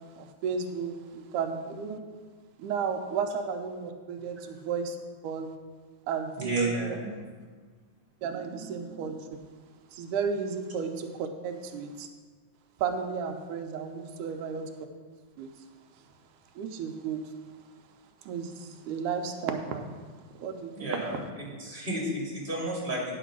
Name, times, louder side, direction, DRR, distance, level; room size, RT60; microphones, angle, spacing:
voice 1, 0.1-2.0 2.6-5.0 5.2-5.5 6.1-6.7 8.2-9.4 9.9-12.1 12.8-14.7 15.4-15.5 16.6-17.3 18.2-20.0 20.4-21.0, right 6 dB, 90° right, 5 dB, 2.3 m, -33 dB
voice 2, 6.4-7.1 20.7-21.1 21.6-23.2, right 2 dB, 15° right, -4 dB, 2.5 m, -31 dB
10.0 x 6.0 x 6.1 m, 1.4 s
omnidirectional pair, 3.5 m